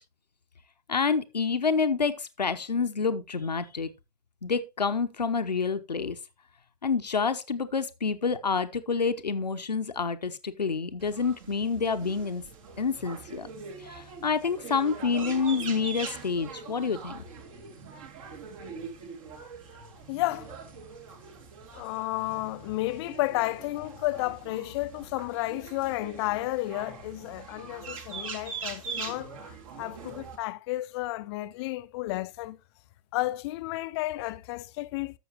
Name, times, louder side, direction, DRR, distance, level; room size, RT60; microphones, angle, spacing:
voice 1, 0.9-3.9 4.4-6.2 6.8-12.4 12.8-13.5 13.8-17.2, left 5 dB, 85° left, 0.8 m, -28 dB
sound 1, 11.0-30.4, right 5 dB, 55° right, 2.4 m, -42 dB
voice 2, 20.1-20.5 21.7-32.6 33.1-35.2, left 18 dB, 40° left, 0.5 m, -32 dB
13.5 x 6.4 x 2.9 m
figure-of-eight pair, 100°, 21 cm